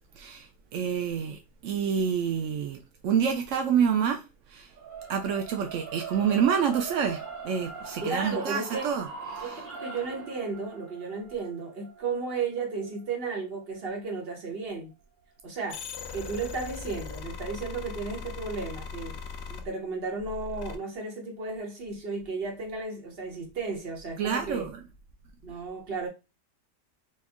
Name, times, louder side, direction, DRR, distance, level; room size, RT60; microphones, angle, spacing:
voice 1, 0.2-4.2 4.5-4.7 5.1-9.1 9.3-9.6 24.2-24.8, right 7 dB, 75° right, 0.7 m, -28 dB
sound 1, 4.7-14.9, right 5 dB, 60° right, 1.8 m, -42 dB
voice 2, 8.0-8.9 9.4-14.9 15.4-15.8 16.1-19.2 19.5-24.7 25.4-26.1, right 4 dB, 40° right, 1.2 m, -34 dB
sound 2, 15.7-19.7 20.2-20.8, left 5 dB, 75° left, 0.6 m, -39 dB
4.4 x 2.3 x 3.5 m
omnidirectional pair, 1.8 m